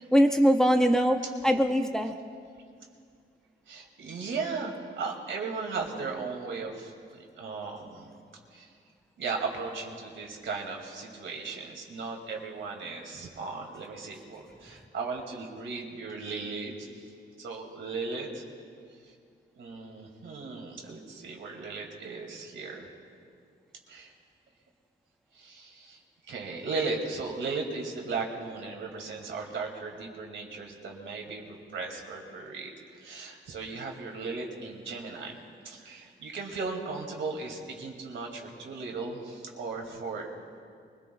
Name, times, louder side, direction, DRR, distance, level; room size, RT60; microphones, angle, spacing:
voice 1, 0.1-2.2, equal, 5° left, 4 dB, 0.7 m, -22 dB
voice 2, 3.7-8.1 8.5-8.7 9.2-17.1 17.4-18.4 19.0-19.1 19.6-22.9 23.9-24.1 25.3-26.0 26.3-35.4 35.6-40.3, right 4 dB, 85° right, 1 dB, 2.3 m, -36 dB
23.0 x 22.0 x 2.3 m, 2.2 s
wide cardioid pair, 130°, 19 cm